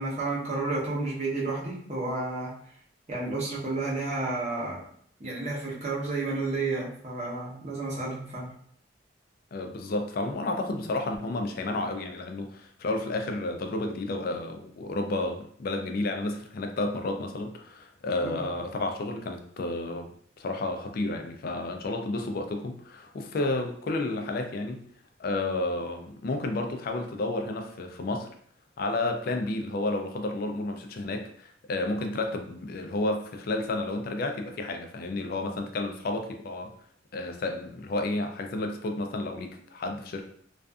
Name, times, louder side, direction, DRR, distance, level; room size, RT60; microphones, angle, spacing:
voice 1, 0.0-2.5 3.1-4.8 5.2-8.5 18.2-18.4, right 3 dB, 35° right, -5 dB, 0.8 m, -31 dB
voice 2, 9.5-20.1 20.4-24.8 25.2-28.3 28.8-36.7 37.1-40.2, left 2 dB, 50° left, 4 dB, 0.3 m, -31 dB
2.5 x 2.4 x 2.3 m, 0.62 s
head